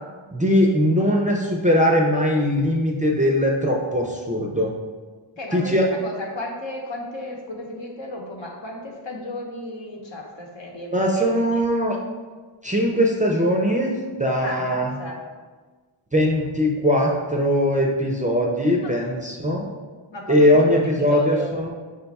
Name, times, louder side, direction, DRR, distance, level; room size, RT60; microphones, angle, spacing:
voice 1, 0.3-4.7 5.5-5.8 10.9-12.0 12.6-14.9 16.1-19.7 20.3-21.7, equal, 15° right, -1 dB, 0.4 m, -20 dB
voice 2, 5.4-11.5 14.4-15.2 18.8-19.0 20.1-21.6, left 1 dB, 60° left, 0 dB, 0.9 m, -34 dB
5.1 x 2.3 x 4.0 m, 1.4 s
wide cardioid pair, 80°, 50 cm